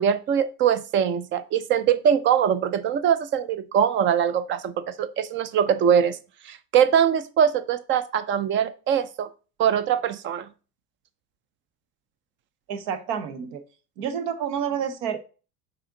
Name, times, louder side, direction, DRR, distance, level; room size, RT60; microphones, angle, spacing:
voice 1, 0.0-6.2 6.4-9.3 9.6-10.5, right 8 dB, 30° right, 14 dB, 0.4 m, -22 dB
voice 2, 12.7-13.6 14.0-15.2, right 8 dB, 65° right, 10 dB, 1.1 m, -29 dB
6.4 x 4.4 x 3.8 m, 0.35 s
cardioid pair, 155°, 42 cm